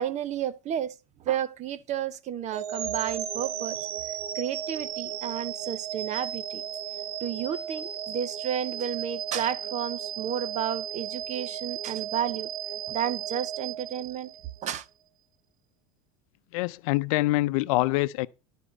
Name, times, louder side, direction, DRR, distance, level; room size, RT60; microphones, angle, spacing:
voice 1, 0.0-3.9 4.3-6.6 7.2-12.5 12.9-14.3 14.6-14.9, right 9 dB, 40° right, 0.8 m, -32 dB
sound 1, 2.5-14.6, right 10 dB, 90° right, 1.0 m, -35 dB
voice 2, 16.5-18.3, left 19 dB, 75° left, 0.6 m, -25 dB
12.5 x 4.4 x 6.5 m
supercardioid pair, 115°, 18 cm